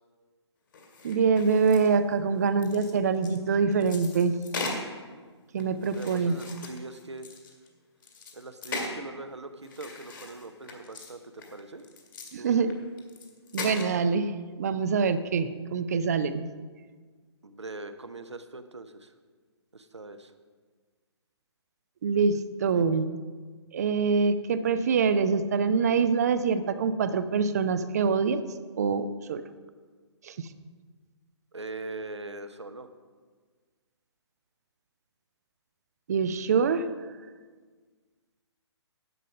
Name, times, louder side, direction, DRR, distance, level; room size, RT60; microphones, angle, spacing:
sound 1, 0.7-2.1 2.4-4.9 5.6-7.7 8.0-9.0 9.6-11.1 11.4-12.3 12.6-12.7 13.0-14.0, left 3 dB, 45° left, 2.2 m, -39 dB
voice 1, 1.0-4.3 5.5-6.3 12.3-12.7 13.5-14.3 14.6-16.4 22.0-23.1 23.7-28.4 28.8-29.4 30.2-30.3 36.1-36.9, right 5 dB, 35° right, 12 dB, 0.5 m, -25 dB
voice 2, 5.9-7.4 8.3-11.8 12.4-12.8 17.4-19.1 19.7-20.3 22.7-23.0 31.5-32.9, right 2 dB, 75° right, 9 dB, 0.9 m, -41 dB
11.0 x 7.6 x 5.2 m, 1.5 s
figure-of-eight pair, 135°, 15 cm